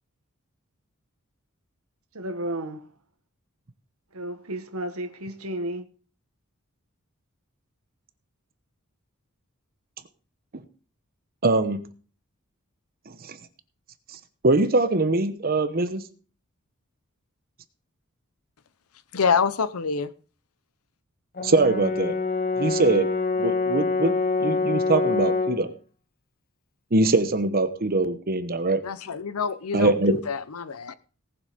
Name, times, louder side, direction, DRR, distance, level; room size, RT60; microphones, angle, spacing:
voice 1, 2.1-2.9 4.1-5.9, right 1 dB, 80° right, 1.6 m, -32 dB
voice 2, 11.4-11.8 13.2-13.4 14.4-16.0 21.4-22.2 22.6-23.1 23.4-25.7 26.9-28.8 29.7-30.2, right 2 dB, 45° right, 1.0 m, -22 dB
voice 3, 19.1-20.1 28.8-30.9, left 6 dB, 85° left, 0.7 m, -26 dB
Brass instrument, 21.4-25.7, left 4 dB, 45° left, 1.8 m, -25 dB
18.5 x 7.3 x 5.1 m
head